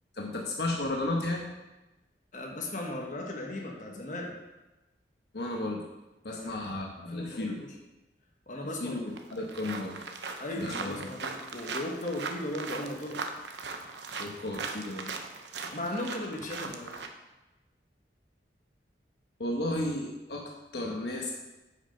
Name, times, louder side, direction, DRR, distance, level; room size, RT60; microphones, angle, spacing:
voice 1, 0.2-1.5 5.3-5.8 6.2-7.6 8.8-10.0 10.6-11.1 14.2-15.1 15.6-15.8 19.4-21.3, left 2 dB, 70° left, -1 dB, 1.1 m, -33 dB
voice 2, 2.3-4.3 6.3-6.5 7.1-7.8 8.5-9.0 10.4-13.2 15.7-17.0, left 1 dB, 45° left, -1 dB, 1.4 m, -37 dB
sound 1, 8.7-8.8 9.2-17.1, right 4 dB, 85° right, 0.8 m, -39 dB
8.1 x 5.4 x 5.3 m, 1.0 s
head